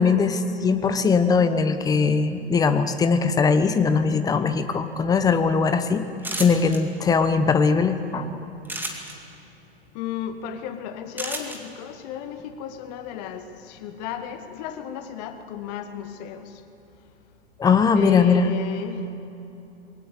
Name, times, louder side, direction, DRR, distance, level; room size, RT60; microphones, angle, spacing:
voice 1, 0.0-6.0 6.4-8.3 17.6-18.5, left 5 dB, 10° left, 10 dB, 1.0 m, -20 dB
sound 1, 6.2-6.8 8.6-9.1 11.2-11.6, right 2 dB, 5° right, 2.3 m, -30 dB
voice 2, 9.9-16.6 17.9-19.0, left 9 dB, 40° left, 9 dB, 1.5 m, -34 dB
22.0 x 18.5 x 8.4 m, 2.9 s
figure-of-eight pair, 100°, 32 cm